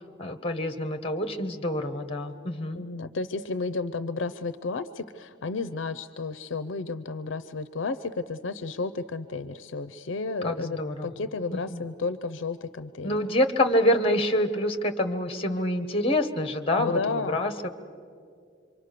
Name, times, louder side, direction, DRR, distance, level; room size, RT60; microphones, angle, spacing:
voice 1, 0.2-2.8 10.4-11.1 11.5-11.8 13.0-17.7, left 1 dB, 30° left, 9 dB, 1.2 m, -26 dB
voice 2, 2.8-13.2 16.8-17.4, left 4 dB, 65° left, 13 dB, 0.5 m, -32 dB
26.5 x 24.0 x 6.7 m, 2.4 s
head